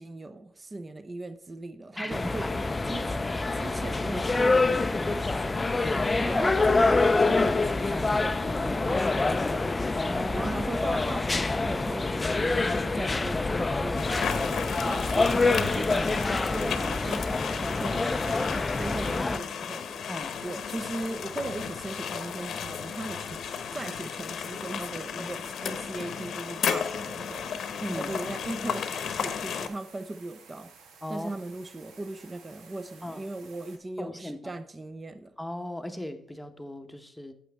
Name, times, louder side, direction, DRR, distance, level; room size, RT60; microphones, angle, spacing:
voice 1, 0.0-3.2 3.5-5.9 6.2-9.9 10.1-18.4 18.8-19.9 20.4-27.5 27.9-30.7 31.1-35.3, right 2 dB, 25° right, 0.6 m, -38 dB
voice 2, 2.0-2.8 3.2-3.5 5.8-6.2 6.8-7.2 7.9-8.1 10.0-10.6 10.9-11.1 11.4-11.7 12.3-12.5 14.8-15.0 15.9-16.2 18.8-19.0 20.1-20.4 25.1-25.4 27.8-28.1 31.0-31.3 33.0-33.2 34.0-34.5 35.4-37.3, left 1 dB, 5° left, 1.0 m, -38 dB
sound 1, 2.1-19.4, left 3 dB, 20° left, 0.4 m, -26 dB
sound 2, 14.0-29.7, left 7 dB, 65° left, 0.9 m, -34 dB
sound 3, 27.2-33.8, right 5 dB, 80° right, 1.3 m, -54 dB
9.2 x 7.4 x 3.5 m
cardioid pair, 90°, 0 cm